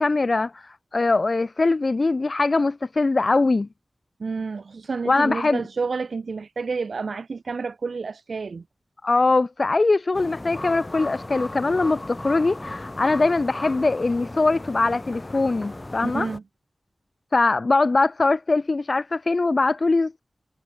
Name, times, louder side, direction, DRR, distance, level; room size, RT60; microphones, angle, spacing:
voice 1, 0.0-3.7 5.1-5.6 9.0-16.3 17.3-20.2, left 3 dB, 50° left, 0.4 m, -22 dB
voice 2, 4.2-8.6 16.0-16.4, right 4 dB, 80° right, 0.9 m, -30 dB
sound 1, 10.1-16.4, left 2 dB, 30° left, 6.6 m, -36 dB
wide cardioid pair, 70°, 0 cm